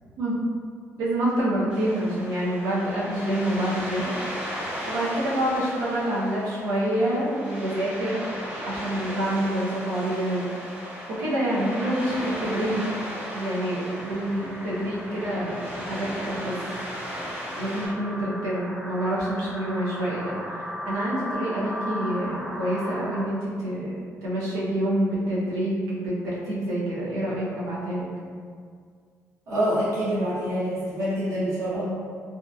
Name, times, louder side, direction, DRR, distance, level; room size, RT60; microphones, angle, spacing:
voice 1, 1.0-4.1 4.8-8.2 8.6-10.5 11.1-16.6 17.5-20.3 20.8-28.1, right 1 dB, 90° right, -6 dB, 0.7 m, -27 dB
sound 1, 1.7-17.9, equal, 20° right, 1.0 m, -36 dB
sound 2, 14.0-23.2, equal, 5° right, 0.3 m, -37 dB
voice 2, 29.5-31.9, equal, 60° right, -10 dB, 0.9 m, -26 dB
2.7 x 2.5 x 2.3 m, 2.1 s
cardioid pair, 120°, 6 cm